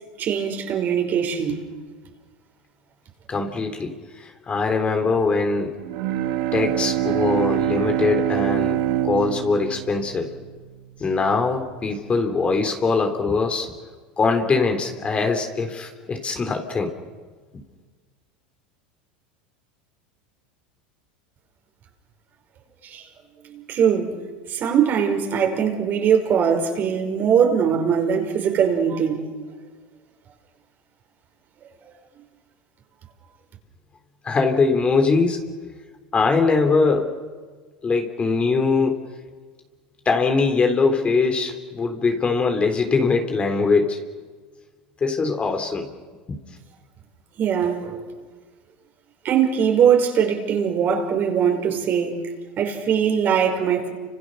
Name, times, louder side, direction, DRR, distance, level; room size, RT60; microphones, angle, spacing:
voice 1, 0.2-1.6 22.9-23.0 23.4-24.1 24.5-29.3 47.4-48.0 49.2-52.2 52.6-53.9, right 7 dB, 40° right, 5.4 m, -21 dB
voice 2, 3.3-5.7 6.5-10.3 11.0-13.7 14.2-16.9 34.2-35.4 36.1-37.2 37.8-39.0 40.1-44.0 45.0-45.9 46.3-46.4, left 4 dB, 25° left, 3.6 m, -22 dB
Bowed string instrument, 5.8-11.2, right 12 dB, 70° right, 2.3 m, -25 dB
30.0 x 26.0 x 6.5 m
supercardioid pair, 115°, 5 cm